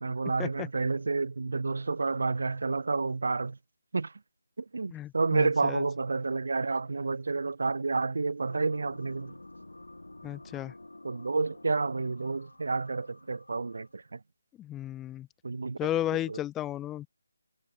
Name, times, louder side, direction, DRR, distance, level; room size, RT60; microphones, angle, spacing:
voice 1, 0.0-3.6 3.9-4.1 4.6-9.3 11.0-14.2 15.4-15.8 16.3-16.4, right 3 dB, 65° right, 2.2 m, -30 dB
voice 2, 4.9-5.8 10.2-10.7 14.6-15.3 15.8-17.1, left 13 dB, 10° left, 0.9 m, -34 dB
sound 1, 8.4-14.1, left 2 dB, 90° left, 4.2 m, -50 dB
figure-of-eight pair, 160°, 0 cm